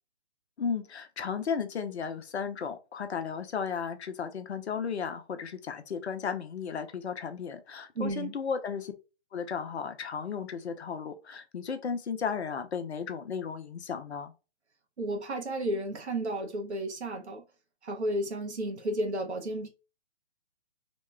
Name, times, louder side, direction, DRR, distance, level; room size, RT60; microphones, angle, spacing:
voice 1, 0.6-8.9 9.3-14.3, left 6 dB, 80° left, 0.7 m, -34 dB
voice 2, 8.0-8.3 15.0-17.4 17.8-19.7, right 1 dB, 90° right, 0.9 m, -32 dB
2.9 x 2.2 x 3.2 m
hypercardioid pair, 140°, 33 cm